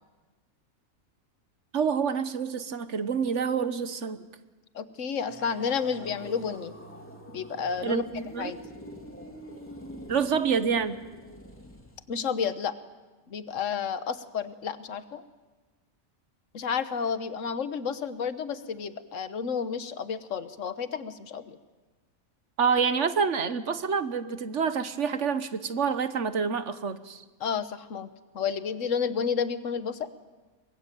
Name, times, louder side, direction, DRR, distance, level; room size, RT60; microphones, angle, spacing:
voice 1, 1.7-4.3 7.8-8.5 10.1-11.0 22.6-27.2, right 6 dB, 60° right, 12 dB, 1.4 m, -27 dB
voice 2, 4.7-6.7 7.3-8.0 8.4-8.6 12.1-12.7 13.3-15.2 16.5-21.6 27.4-28.1 28.3-30.1, left 6 dB, 65° left, 12 dB, 1.5 m, -31 dB
sound 1, 5.3-12.0, equal, 10° left, 3.2 m, -44 dB
23.5 x 22.0 x 9.2 m, 1.2 s
omnidirectional pair, 1.4 m